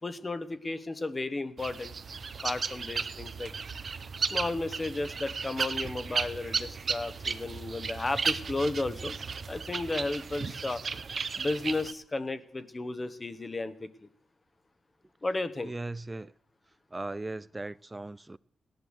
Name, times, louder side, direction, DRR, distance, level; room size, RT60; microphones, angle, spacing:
voice 1, 0.0-1.9 2.4-3.5 4.3-9.2 9.5-10.8 11.4-14.1 15.2-15.7, left 2 dB, 30° left, 1.3 m, -33 dB
sound 1, 1.6-11.9, right 5 dB, 55° right, 0.8 m, -35 dB
voice 2, 15.6-16.3 16.9-18.4, right 2 dB, 20° right, 0.5 m, -38 dB
16.5 x 10.5 x 6.6 m
cardioid pair, 60°, 0 cm